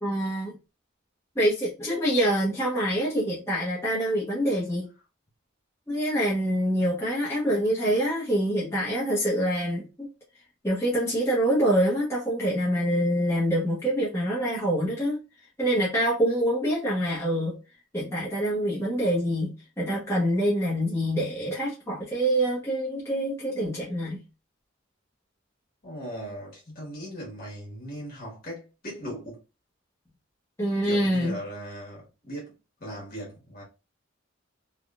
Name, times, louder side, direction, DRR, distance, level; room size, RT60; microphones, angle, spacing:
voice 1, 0.0-0.5 1.3-4.9 5.9-10.1 10.6-15.2 15.6-17.6 17.9-24.2 30.6-31.4, equal, 15° left, 1.0 m, -25 dB
voice 2, 25.8-29.4 30.8-33.6, equal, 50° left, 1.6 m, -39 dB
3.5 x 2.3 x 2.5 m
head